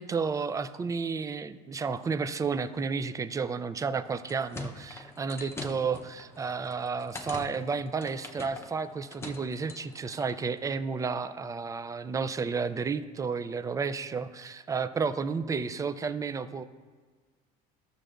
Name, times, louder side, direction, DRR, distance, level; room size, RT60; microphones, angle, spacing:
voice 1, 0.0-16.6, right 5 dB, 15° right, 12 dB, 0.4 m, -32 dB
sound 1, 4.0-10.4, left 2 dB, 15° left, 0.8 m, -44 dB
14.0 x 6.6 x 2.5 m, 1.5 s
cardioid pair, 125°, 19 cm